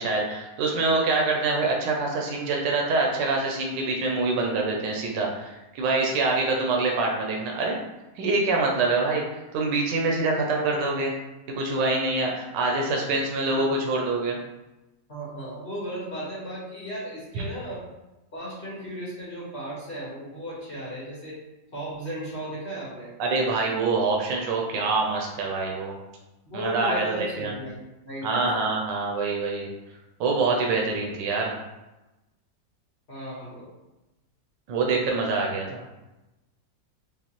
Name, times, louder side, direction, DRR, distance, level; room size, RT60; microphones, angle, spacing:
voice 1, 0.0-7.8 8.2-11.2 11.5-14.4 17.3-17.4 23.2-26.0 26.5-27.5 28.2-29.7 30.2-31.6 34.7-35.8, right 3 dB, 90° right, 0 dB, 1.3 m, -25 dB
voice 2, 13.5-13.9 15.1-17.8 18.3-21.4 21.7-23.1 26.4-28.6 33.1-33.7, equal, 35° left, -7 dB, 1.2 m, -36 dB
5.2 x 2.1 x 2.9 m, 1.0 s
omnidirectional pair, 1.9 m